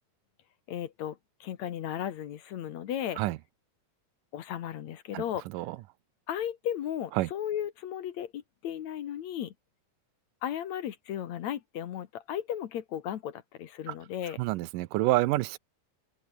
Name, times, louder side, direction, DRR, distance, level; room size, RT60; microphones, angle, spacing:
voice 1, 0.7-3.2 4.3-5.5 6.3-9.5 10.4-14.4, left 10 dB, 65° left, 2.3 m, -35 dB
voice 2, 5.1-5.8 7.2-7.3 13.9-14.0 14.4-15.6, right 18 dB, 80° right, 2.3 m, -28 dB
open air
omnidirectional pair, 3.9 m